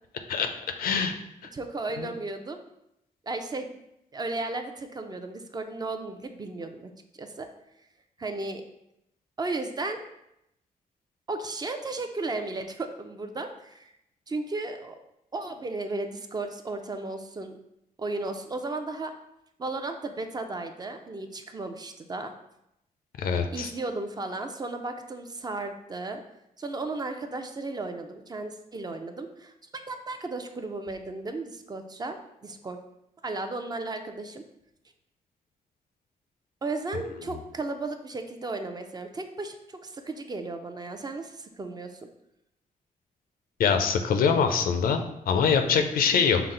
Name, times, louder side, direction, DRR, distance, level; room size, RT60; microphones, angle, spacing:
voice 1, 0.8-1.1 2.0-2.1 23.2-23.7 43.6-46.4, left 6 dB, 80° left, 7 dB, 0.5 m, -24 dB
voice 2, 1.5-2.6 3.2-3.7 4.1-6.9 7.2-7.5 8.2-8.6 9.4-10.0 11.3-13.9 14.3-14.9 15.3-17.5 18.0-19.1 19.6-22.3 23.5-26.2 26.6-29.5 29.9-32.8 33.2-34.4 36.6-42.0, right 2 dB, 25° right, 6 dB, 0.4 m, -34 dB
5.6 x 2.0 x 3.7 m, 0.82 s
cardioid pair, 95°, 15 cm